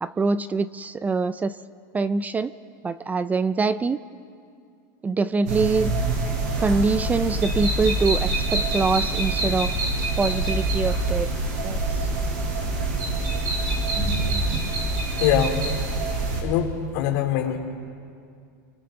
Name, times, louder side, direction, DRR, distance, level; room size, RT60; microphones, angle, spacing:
voice 1, 0.0-1.6 1.9-2.5 2.8-4.0 5.0-5.9 6.6-9.7 10.2-11.3 11.6-11.8, right 4 dB, 15° right, 15 dB, 0.5 m, -24 dB
sound 1, 5.5-16.4, right 2 dB, 70° right, 7.4 m, -25 dB
voice 2, 15.2-15.6 16.4-17.6, left 10 dB, 65° left, 2 dB, 3.2 m, -23 dB
29.5 x 24.5 x 3.9 m, 2.3 s
supercardioid pair, 125°, 10 cm